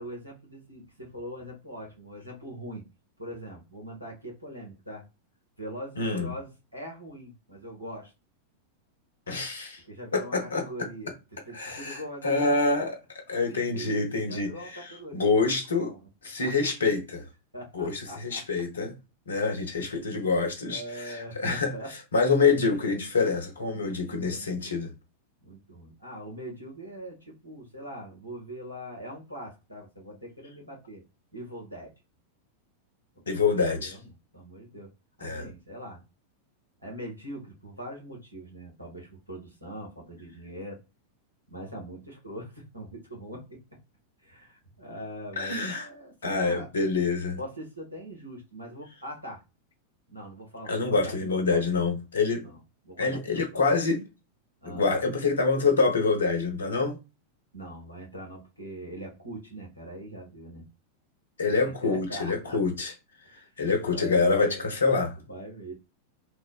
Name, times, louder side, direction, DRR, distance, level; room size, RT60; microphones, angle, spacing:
voice 1, 0.0-2.8 3.2-5.0 5.6-8.1 9.8-11.1 11.4-12.5 13.5-16.1 16.4-16.5 17.5-18.4 20.6-21.9 23.7-24.9 25.4-31.0 31.3-31.9 33.3-34.9 35.2-36.0 36.8-40.8 41.5-43.6 44.2-46.7 47.4-49.4 50.1-51.6 52.4-53.6 54.6-54.9 57.5-60.6 61.4-62.6 63.2-63.5 63.9-64.7 65.2-65.7, equal, 85° right, 1.2 m, -42 dB
voice 2, 6.0-6.3 9.3-9.8 10.1-10.6 11.5-13.0 13.3-15.9 16.2-17.3 17.7-18.9 19.3-21.7 22.1-24.9 33.3-34.0 35.2-35.5 45.4-45.9 46.2-47.4 50.7-52.5 53.0-54.0 54.6-57.0 61.4-62.9 63.3-65.1, left 4 dB, 70° left, 0.8 m, -26 dB
3.2 x 2.1 x 2.2 m
figure-of-eight pair, 90°, 0 cm